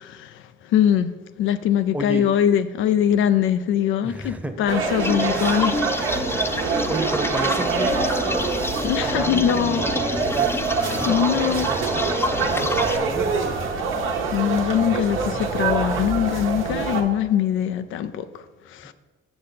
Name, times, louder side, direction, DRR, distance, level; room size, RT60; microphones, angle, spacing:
voice 1, 0.0-6.8 8.8-9.9 11.0-11.7 14.3-18.9, left 9 dB, 80° left, 0.4 m, -23 dB
voice 2, 1.9-2.3 4.0-4.6 6.9-8.4 9.1-9.8 10.1-10.5 11.0-13.6, right 1 dB, 5° right, 0.8 m, -31 dB
sound 1, 4.7-17.0, right 4 dB, 85° right, 1.1 m, -25 dB
sound 2, 5.0-13.0, left 2 dB, 10° left, 0.5 m, -28 dB
7.8 x 6.4 x 4.1 m
cardioid pair, 90°, 20 cm